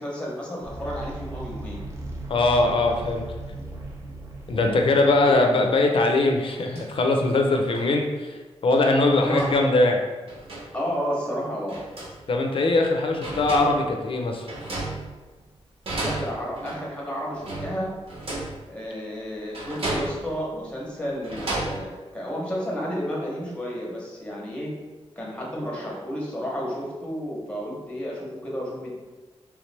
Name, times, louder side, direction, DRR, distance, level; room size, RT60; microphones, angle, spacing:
voice 1, 0.0-1.8 4.5-4.8 5.3-5.4 9.2-9.5 10.7-11.8 16.0-17.9 18.7-24.7 25.2-28.9, equal, 10° left, -3 dB, 0.8 m, -32 dB
sound 1, 0.6-5.8, right 2 dB, 25° right, 0.6 m, -37 dB
voice 2, 2.3-3.2 4.5-8.4 8.6-10.0 12.3-14.5, left 2 dB, 50° left, 3 dB, 0.4 m, -21 dB
sound 2, 6.4-6.9 7.7-7.8 9.0-9.6 10.3-10.7 11.7-12.2 12.9-13.0 13.2-13.9 14.5-15.4 15.9-16.9 17.3-18.6 19.5-20.4 21.1-21.8, right 2 dB, 60° right, 1.0 m, -33 dB
3.4 x 3.1 x 3.2 m, 1.3 s
wide cardioid pair, 170°, 11 cm